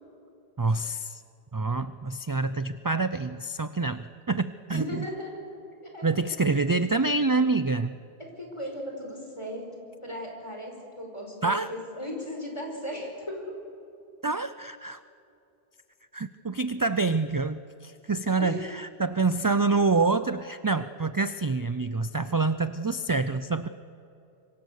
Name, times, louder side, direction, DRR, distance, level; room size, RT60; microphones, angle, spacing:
voice 1, 0.6-1.2 1.5-5.0 6.0-7.9 11.4-11.7 14.2-15.0 16.1-23.7, right 3 dB, 30° right, 12 dB, 0.4 m, -27 dB
voice 2, 4.7-5.4 5.8-6.4 8.2-13.5 18.4-18.6, left 1 dB, 30° left, 1 dB, 5.0 m, -37 dB
26.5 x 23.0 x 6.7 m, 2.7 s
omnidirectional pair, 1.1 m